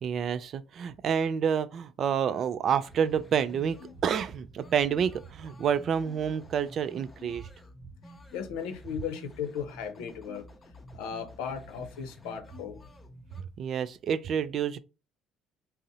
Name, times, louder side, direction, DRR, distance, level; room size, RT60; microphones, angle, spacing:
voice 1, 0.0-7.5 13.6-14.8, right 7 dB, 55° right, 0.3 m, -28 dB
sound 1, 2.9-13.4, left 1 dB, 25° left, 0.6 m, -51 dB
voice 2, 8.3-10.5 10.9-12.8, left 7 dB, 80° left, 0.6 m, -36 dB
2.6 x 2.0 x 3.9 m
hypercardioid pair, 70°, 0 cm